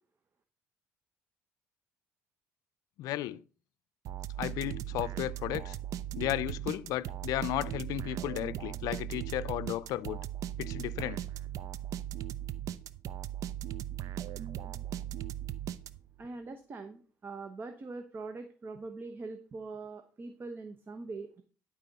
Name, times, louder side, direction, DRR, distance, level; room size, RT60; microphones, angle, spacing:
voice 1, 3.0-3.4 4.4-5.8 6.2-10.2 10.6-11.2, left 14 dB, 80° left, 0.5 m, -34 dB
sound 1, 4.0-16.2, right 11 dB, 65° right, 0.5 m, -38 dB
voice 2, 16.2-21.4, right 3 dB, 35° right, 1.0 m, -43 dB
11.5 x 4.3 x 5.4 m
cardioid pair, 95°, 6 cm